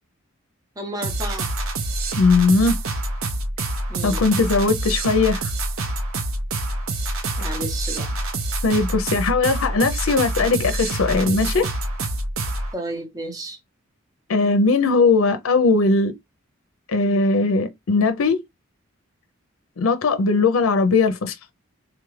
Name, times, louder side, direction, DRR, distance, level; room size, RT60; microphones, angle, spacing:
voice 1, 0.8-1.5 3.9-4.2 7.4-8.1 12.7-13.6, right 1 dB, 20° right, 0.9 m, -32 dB
sound 1, 1.0-12.7, right 2 dB, 85° right, 0.7 m, -26 dB
voice 2, 2.2-2.8 4.0-5.5 8.6-11.7 14.3-16.1 16.9-18.4 19.8-21.4, left 3 dB, 85° left, 0.5 m, -19 dB
3.5 x 2.4 x 3.1 m
head